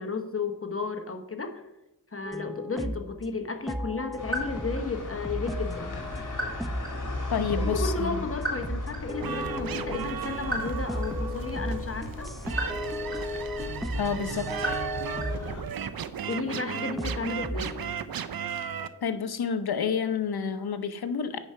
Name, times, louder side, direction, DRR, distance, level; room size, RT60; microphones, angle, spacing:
voice 1, 0.0-1.6 2.1-6.0 7.4-12.3 16.3-17.8, left 3 dB, 35° left, 6 dB, 1.1 m, -33 dB
sound 1, 2.2-3.1 3.7-4.9 5.2-7.0 7.3-8.3 8.6-10.2 10.7-15.6 16.3-17.8, left 1 dB, ahead, 0.5 m, -35 dB
sound 2, 4.2-15.6, left 1 dB, 50° left, 2.0 m, -35 dB
voice 2, 7.3-8.2 14.0-14.5 19.0-21.4, left 6 dB, 70° left, 10 dB, 0.8 m, -29 dB
sound 3, 9.2-18.9, right 8 dB, 65° right, 0.6 m, -36 dB
9.1 x 4.9 x 5.6 m, 0.94 s
wide cardioid pair, 70°, 39 cm